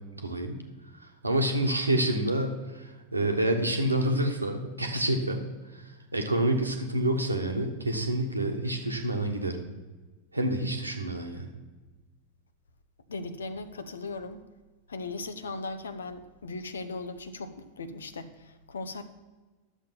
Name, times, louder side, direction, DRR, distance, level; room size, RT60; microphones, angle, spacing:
voice 1, 0.1-0.6 1.0-5.4 5.7-9.6 10.3-11.5, right 1 dB, 85° right, 4 dB, 1.3 m, -28 dB
voice 2, 13.1-14.4 14.9-19.0, left 3 dB, 70° left, 12 dB, 0.8 m, -38 dB
11.5 x 7.2 x 5.8 m, 1.3 s
figure-of-eight pair, 90°, 0 cm